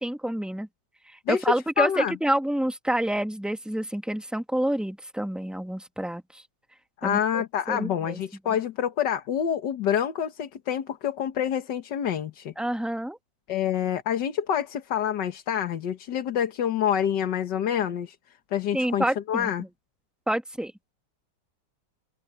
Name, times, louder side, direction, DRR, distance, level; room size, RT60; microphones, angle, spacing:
voice 1, 0.0-0.7 1.1-6.4 7.0-7.2 7.7-8.2 12.6-13.2 18.7-19.5 20.3-20.7, right 1 dB, ahead, 1.2 m, -28 dB
voice 2, 1.3-2.1 7.0-12.5 13.5-18.2 18.5-19.6, left 9 dB, 70° left, 1.9 m, -27 dB
open air
omnidirectional pair, 2.0 m